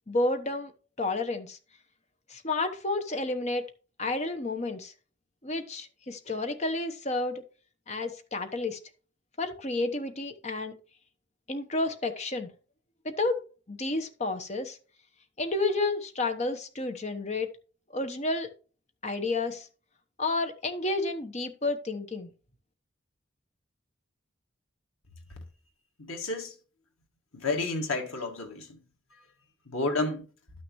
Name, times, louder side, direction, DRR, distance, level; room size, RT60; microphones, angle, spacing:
voice 1, 0.1-0.7 1.0-1.6 2.3-3.6 4.0-4.9 5.4-7.4 7.9-8.8 9.4-10.7 11.5-12.5 13.0-13.4 13.7-14.8 15.4-17.5 17.9-18.5 19.0-19.7 20.2-22.3, left 2 dB, 35° left, 1.0 m, -30 dB
voice 2, 26.1-26.5 27.3-28.8 29.7-30.3, left 3 dB, 90° left, 1.9 m, -31 dB
11.5 x 6.2 x 3.1 m
head